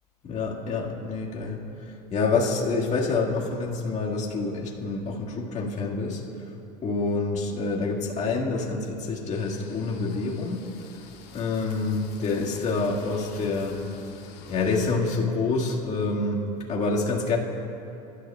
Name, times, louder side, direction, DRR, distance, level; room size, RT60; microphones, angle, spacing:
voice 1, 0.2-6.2 6.8-10.7 11.3-13.8 14.5-17.4, left 3 dB, 35° left, -2 dB, 2.0 m, -27 dB
sound 1, 9.3-14.9, left 6 dB, 55° left, 1.7 m, -48 dB
23.5 x 11.5 x 2.4 m, 2.7 s
hypercardioid pair, 85°, 20 cm